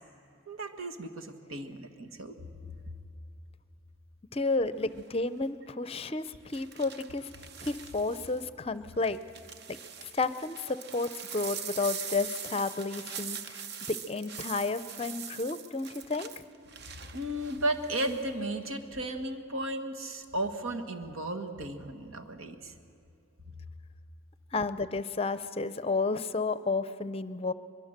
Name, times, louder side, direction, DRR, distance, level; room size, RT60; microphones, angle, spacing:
voice 1, 0.5-2.3 17.0-22.7, right 1 dB, 90° right, 4 dB, 1.6 m, -34 dB
voice 2, 4.3-7.3 7.6-9.2 10.0-13.6 13.9-16.4 24.5-27.5, left 3 dB, 30° left, 13 dB, 0.5 m, -31 dB
sound 1, 4.9-5.2 6.5-8.4 9.0-18.3 18.6-19.1, right 7 dB, 50° right, 0.8 m, -43 dB
22.5 x 22.5 x 6.6 m, 2.7 s
head